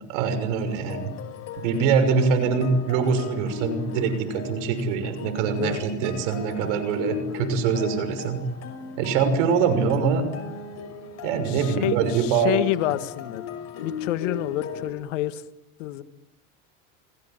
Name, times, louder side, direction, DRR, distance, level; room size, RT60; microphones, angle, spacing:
voice 1, 0.1-1.1 1.6-8.4 9.0-10.2 11.2-12.6, right 6 dB, 70° right, 10 dB, 6.2 m, -23 dB
sound 1, 0.7-14.9, left 6 dB, 40° left, 5.5 m, -37 dB
voice 2, 5.4-5.8 11.5-13.4 13.8-15.4 15.8-16.0, left 15 dB, 70° left, 12 dB, 1.8 m, -28 dB
29.0 x 18.5 x 9.1 m, 0.88 s
hypercardioid pair, 105°, 38 cm